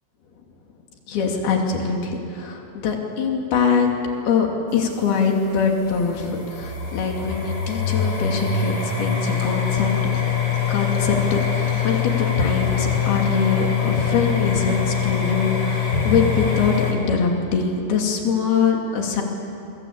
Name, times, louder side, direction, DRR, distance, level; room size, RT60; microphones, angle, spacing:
voice 1, 1.1-3.9 4.3-4.5 4.7-10.0 10.7-19.2, left 5 dB, 75° left, 1 dB, 4.7 m, -23 dB
sound 1, 4.7-16.9, left 7 dB, 35° left, 4.2 m, -24 dB
27.0 x 23.0 x 8.7 m, 2.6 s
omnidirectional pair, 4.5 m